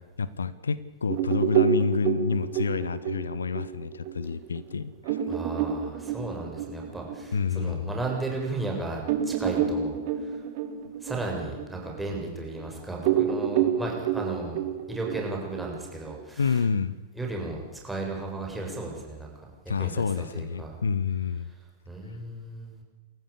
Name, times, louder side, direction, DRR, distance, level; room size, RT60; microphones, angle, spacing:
voice 1, 0.2-5.2 7.3-7.9 16.4-17.0 19.7-21.5, left 5 dB, 70° left, 18 dB, 1.0 m, -28 dB
sound 1, 1.1-8.1 8.6-8.7 9.0-12.7 13.0-16.1, right 9 dB, 45° right, 2.7 m, -28 dB
voice 2, 5.3-10.0 10.2-10.4 11.0-14.6 14.9-16.6 17.2-19.3 19.8-20.8 21.9-22.8, right 2 dB, 5° right, -1 dB, 7.2 m, -35 dB
28.5 x 14.5 x 8.5 m, 1.2 s
figure-of-eight pair, 100°, 0 cm